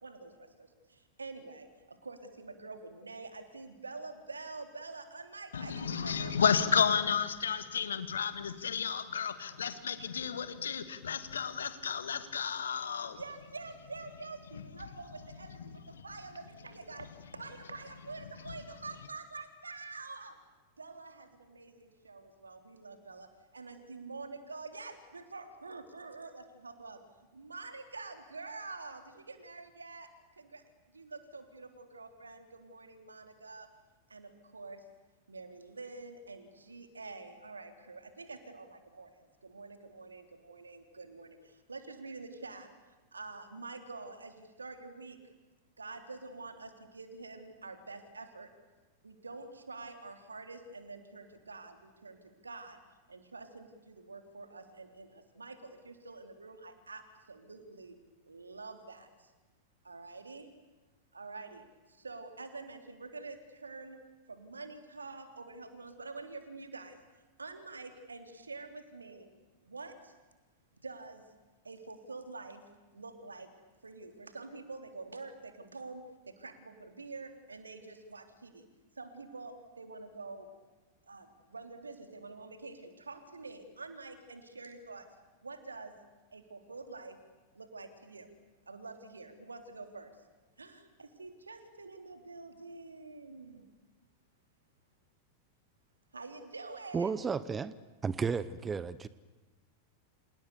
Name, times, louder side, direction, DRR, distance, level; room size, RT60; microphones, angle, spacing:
voice 1, 0.0-0.7 1.2-1.7 2.0-6.7 13.2-15.6 16.0-17.1 17.3-20.3 20.8-21.7 22.1-23.3 23.5-27.0 27.3-29.0 29.3-30.1 30.5-30.6 31.0-33.7 34.1-34.8 35.3-39.1 39.5-41.4 41.7-42.7 43.1-45.2 45.8-48.5 49.0-51.8 52.0-52.2 52.4-52.8 53.1-55.1 55.4-55.6 55.8-57.0 57.3-57.9 58.3-59.1 59.9-60.5 61.1-61.6 62.0-64.0 64.3-66.9 67.4-69.3 69.7-69.9 70.8-71.2 71.7-72.6 72.9-73.5 73.8-76.0 76.4-78.5 79.0-80.5 81.1-81.3 81.5-85.0 85.4-85.9 86.3-87.1 87.6-88.3 88.7-90.1 90.6-93.6 96.1-97.3, right 3 dB, 75° right, 7 dB, 3.5 m, -46 dB
voice 2, 5.5-13.2, left 7 dB, 70° left, 11 dB, 2.1 m, -32 dB
voice 3, 96.9-97.7 98.0-99.1, right 5 dB, 15° right, 17 dB, 0.9 m, -33 dB
29.5 x 28.0 x 7.1 m, 1.2 s
figure-of-eight pair, 90°, 0 cm